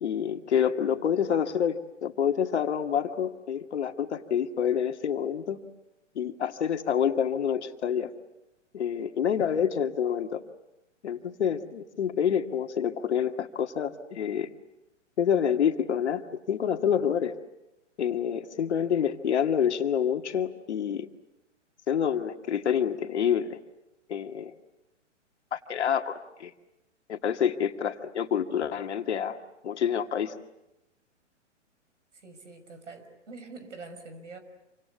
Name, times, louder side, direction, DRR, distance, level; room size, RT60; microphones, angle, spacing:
voice 1, 0.0-5.6 6.2-8.1 8.7-10.4 11.0-14.5 15.2-17.3 18.0-21.1 21.9-23.6 24.1-24.5 25.5-26.5 27.1-29.4 29.6-30.3, left 8 dB, 60° left, 6 dB, 2.1 m, -27 dB
voice 2, 32.1-34.4, right 3 dB, 75° right, 9 dB, 5.8 m, -45 dB
27.5 x 25.5 x 8.3 m, 0.94 s
figure-of-eight pair, 125°, 37 cm